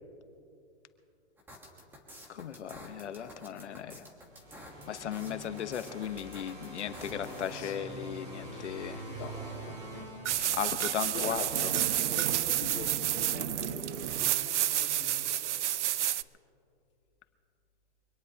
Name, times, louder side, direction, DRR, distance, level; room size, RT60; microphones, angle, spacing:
sound 1, 1.4-7.8, equal, 5° right, 1.3 m, -50 dB
voice 1, 2.3-4.1 4.9-9.0 10.4-11.7, left 9 dB, 80° left, 10 dB, 1.2 m, -37 dB
sound 2, 4.3-11.0, right 1 dB, 30° right, 4.3 m, -45 dB
voice 2, 9.6-10.1 11.1-15.6, left 4 dB, 30° left, -2 dB, 2.8 m, -43 dB
sound 3, 10.3-16.2, right 12 dB, 85° right, 0.5 m, -30 dB
24.5 x 18.0 x 2.9 m, 2.7 s
hypercardioid pair, 165°, 34 cm